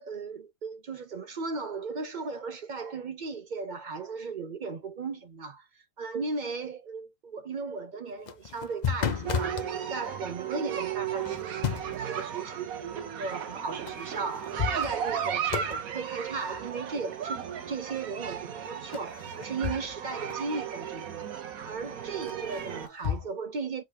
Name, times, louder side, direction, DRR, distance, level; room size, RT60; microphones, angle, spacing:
voice 1, 0.0-5.6 6.0-21.3 21.6-23.8, right 4 dB, 60° right, 0.5 m, -36 dB
sound 1, 8.1-9.7 11.2-12.1 13.9-14.0 14.3-15.2 15.5-15.8 18.9-20.0 20.3-20.4 22.3-23.3, left 8 dB, 70° left, 0.4 m, -33 dB
sound 2, 9.3-22.9, right 8 dB, 75° right, 1.3 m, -35 dB
4.0 x 2.6 x 4.7 m
omnidirectional pair, 1.5 m